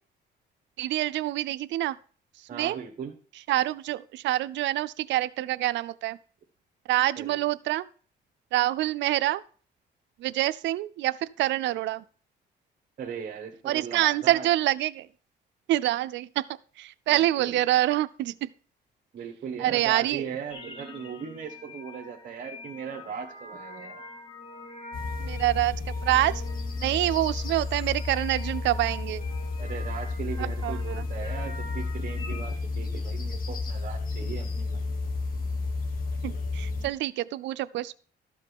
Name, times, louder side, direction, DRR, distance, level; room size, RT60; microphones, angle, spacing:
voice 1, 0.8-1.9 2.5-2.8 3.5-6.2 6.9-7.8 8.5-9.4 10.2-12.0 13.7-15.1 15.7-16.5 16.8-18.5 19.6-20.2 25.2-25.8 26.1-26.4 26.8-29.2 30.6-31.0 36.2-37.9, right 15 dB, 90° right, 14 dB, 0.4 m, -26 dB
voice 2, 2.5-3.1 7.1-7.5 13.0-14.5 17.1-17.6 19.1-24.0 29.6-35.0, right 7 dB, 45° right, 1 dB, 1.3 m, -38 dB
sound 1, 20.5-32.6, left 2 dB, 30° left, 2.7 m, -45 dB
sound 2, 24.9-36.9, left 3 dB, 50° left, 1.5 m, -32 dB
12.5 x 5.3 x 5.4 m, 0.41 s
cardioid pair, 140°, 18 cm